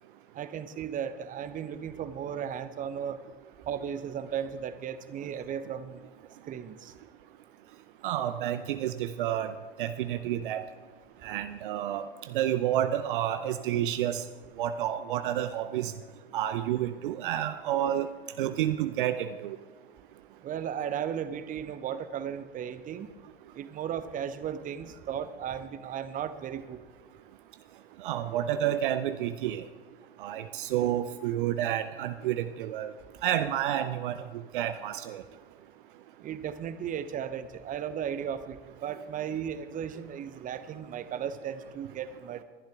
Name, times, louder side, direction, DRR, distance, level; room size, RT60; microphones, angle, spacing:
voice 1, 0.3-3.2 3.7-6.0 6.5-6.9 20.4-23.1 23.5-26.8 36.2-42.4, right 8 dB, 25° right, 12 dB, 0.9 m, -35 dB
voice 2, 8.0-9.5 9.8-10.6 11.2-14.2 14.6-15.9 16.3-18.1 18.4-19.6 28.0-29.6 30.2-32.9 33.2-34.2 34.5-35.2, right 11 dB, 55° right, 10 dB, 0.7 m, -30 dB
21.0 x 11.5 x 3.6 m, 1.4 s
figure-of-eight pair, 85°, 31 cm